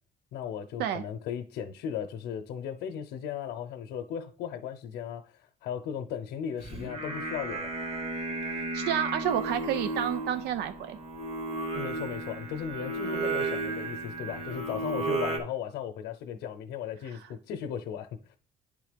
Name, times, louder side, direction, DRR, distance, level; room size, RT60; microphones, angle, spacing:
voice 1, 0.3-7.7 11.7-18.4, left 8 dB, 75° left, 0.7 m, -36 dB
Singing, 6.6-15.4, right 2 dB, 35° right, 2.2 m, -34 dB
voice 2, 8.7-11.0, right 10 dB, 80° right, 0.6 m, -30 dB
9.6 x 3.7 x 5.1 m
cardioid pair, 110°, 17 cm